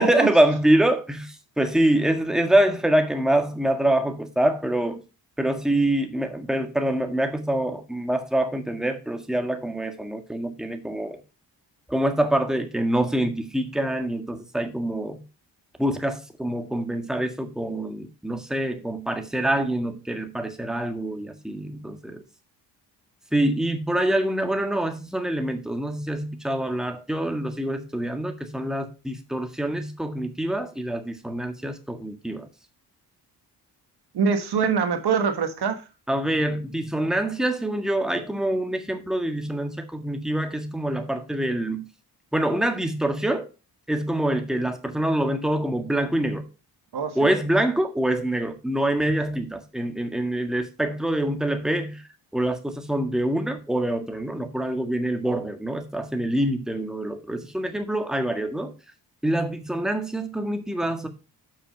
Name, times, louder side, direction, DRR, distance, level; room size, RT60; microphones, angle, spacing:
voice 1, 0.0-5.0 5.4-11.2 11.9-15.2 15.8-22.2 23.3-32.5 36.1-41.8 42.3-43.5 43.9-46.5 47.1-52.0 52.3-58.7 59.2-61.1, right 1 dB, ahead, 1.6 m, -25 dB
voice 2, 34.1-35.8 46.9-47.1, right 6 dB, 60° right, 1.5 m, -24 dB
6.8 x 6.3 x 5.2 m
cardioid pair, 70°, 43 cm